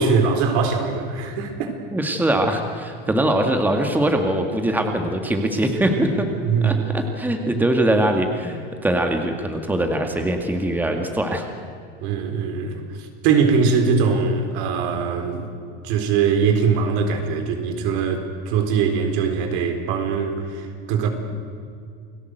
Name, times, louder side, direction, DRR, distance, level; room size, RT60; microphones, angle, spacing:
voice 1, 0.0-1.7 6.4-6.8 12.0-12.8 13.2-15.5 15.8-21.1, right 5 dB, 65° right, 5 dB, 4.2 m, -21 dB
voice 2, 1.9-6.3 6.6-11.5, right 1 dB, 5° right, 4 dB, 2.1 m, -22 dB
29.0 x 18.0 x 8.0 m, 2.3 s
supercardioid pair, 130°, 29 cm